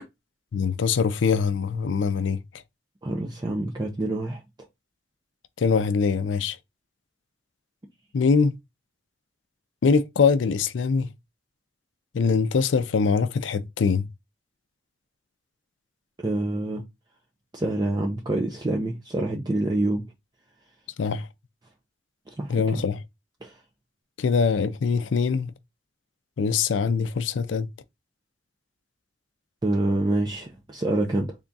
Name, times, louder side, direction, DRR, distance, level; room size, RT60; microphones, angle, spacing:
voice 1, 0.5-2.4 5.6-6.6 8.1-8.5 9.8-11.1 12.1-14.1 21.0-21.3 22.5-23.0 24.2-25.5 26.4-27.7, left 5 dB, 85° left, 0.4 m, -23 dB
voice 2, 3.0-4.4 16.2-16.8 17.5-20.1 22.3-22.8 23.4-23.6 29.6-31.4, right 1 dB, 20° right, 0.5 m, -27 dB
3.5 x 2.3 x 3.9 m
head